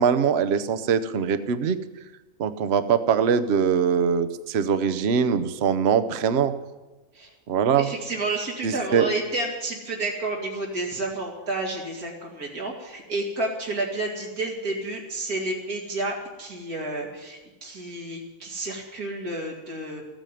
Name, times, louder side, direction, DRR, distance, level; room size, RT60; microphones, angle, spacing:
voice 1, 0.0-1.8 2.4-6.5 7.5-7.9 8.6-9.1, right 7 dB, 50° right, 11 dB, 0.9 m, -22 dB
voice 2, 7.8-20.0, right 2 dB, 75° right, -1 dB, 2.9 m, -30 dB
14.0 x 9.1 x 9.1 m, 1.2 s
omnidirectional pair, 1.6 m